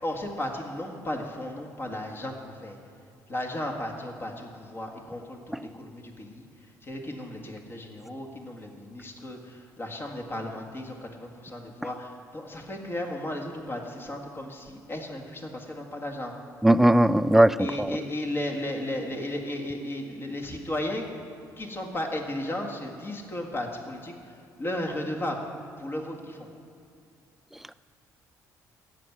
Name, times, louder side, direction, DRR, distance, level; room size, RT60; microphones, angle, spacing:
voice 1, 0.0-2.8 3.3-6.4 6.8-16.3 17.6-21.1 21.6-24.1 24.6-25.4 25.8-26.5, left 1 dB, 30° left, 2 dB, 1.8 m, -34 dB
voice 2, 16.6-17.9, right 1 dB, 5° right, 15 dB, 0.3 m, -19 dB
14.5 x 6.1 x 9.1 m, 2.5 s
cardioid pair, 110°, 7 cm